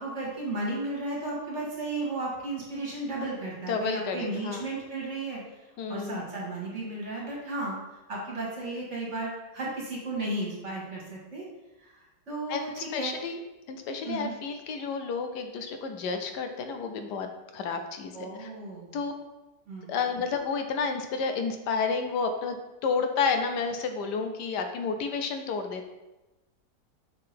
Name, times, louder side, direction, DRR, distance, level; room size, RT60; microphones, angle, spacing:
voice 1, 0.0-5.4 5.9-7.8 8.1-11.4 11.8-13.1 14.0-14.3 18.1-19.0 19.7-19.9, right 2 dB, 45° right, -4 dB, 2.0 m, -34 dB
voice 2, 3.7-4.6 5.8-6.2 12.5-13.4 13.7-17.3 17.5-18.5 18.9-19.1 19.9-22.6 22.8-25.9, left 5 dB, 80° left, 6 dB, 1.2 m, -31 dB
5.6 x 3.8 x 5.1 m, 1.0 s
omnidirectional pair, 1.8 m